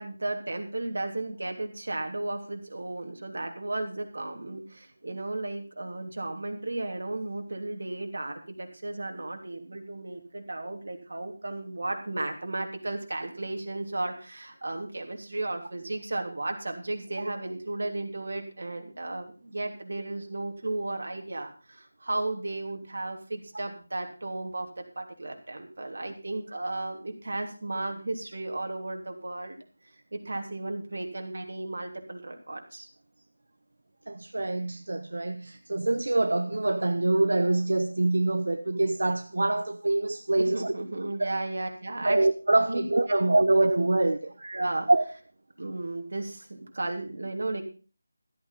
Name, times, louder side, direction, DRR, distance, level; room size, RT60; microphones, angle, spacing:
voice 1, 0.0-29.6 30.1-32.9 40.4-42.2 42.7-42.8 43.1-43.2 44.4-44.9 45.6-47.6, right 2 dB, 60° right, 3.1 m, -34 dB
voice 2, 34.1-40.7 41.2-41.3 42.0-44.3 44.9-45.0, right 2 dB, 80° right, 1.0 m, -25 dB
14.0 x 8.7 x 5.6 m
figure-of-eight pair, 180°, 0 cm